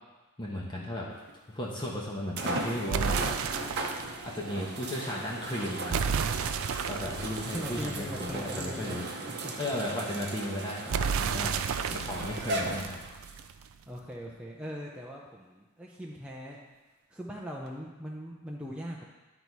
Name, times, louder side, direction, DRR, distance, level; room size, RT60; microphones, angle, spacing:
voice 1, 0.4-1.1 1.5-3.2 4.2-6.3 6.9-9.0 9.6-11.6 11.9-13.0, left 1 dB, 20° left, -3 dB, 1.1 m, -35 dB
sound 1, 1.3-1.4 2.4-13.4 14.1-14.2 17.7-17.8, right 2 dB, 50° right, 0.8 m, -37 dB
sound 2, 2.9-4.2 5.9-8.6 10.9-13.6, right 6 dB, 65° right, 0.4 m, -32 dB
voice 2, 7.5-9.7 13.9-16.6 17.1-19.0, equal, 5° right, -3 dB, 0.6 m, -40 dB
11.0 x 4.1 x 4.7 m, 1.2 s
head